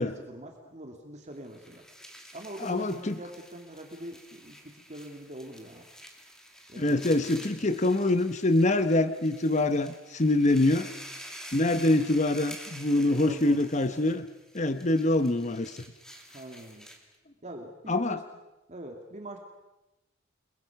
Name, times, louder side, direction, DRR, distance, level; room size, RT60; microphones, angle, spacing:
voice 1, 0.0-1.8 2.3-5.9 6.7-7.0 13.0-13.6 13.9-14.1 16.3-16.9 17.4-18.2 18.7-19.4, right 1 dB, 35° right, 3 dB, 2.3 m, -43 dB
sound 1, 1.4-17.2, equal, 5° left, 2.8 m, -49 dB
voice 2, 2.6-3.2 6.8-10.9 11.5-14.3 14.5-15.8 17.9-18.2, left 2 dB, 35° left, 11 dB, 1.0 m, -25 dB
30.0 x 21.5 x 5.9 m, 1.0 s
head